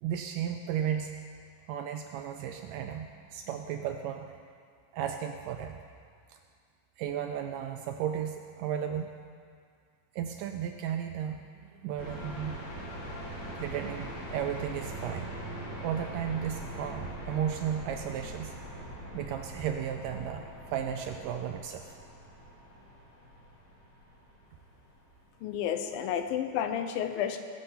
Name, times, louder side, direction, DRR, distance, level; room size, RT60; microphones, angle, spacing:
voice 1, 0.0-1.1 1.7-4.4 4.9-5.8 6.3-6.4 7.0-9.2 10.1-11.5 11.7-12.6 13.6-15.3 15.8-18.5 19.1-22.0, right 9 dB, 80° right, 5 dB, 2.0 m, -34 dB
sound 1, 12.0-25.9, right 1 dB, 50° left, 4.0 m, -42 dB
voice 2, 25.4-27.4, left 9 dB, 80° left, 7 dB, 2.4 m, -31 dB
19.5 x 7.6 x 5.7 m, 2.2 s
omnidirectional pair, 4.2 m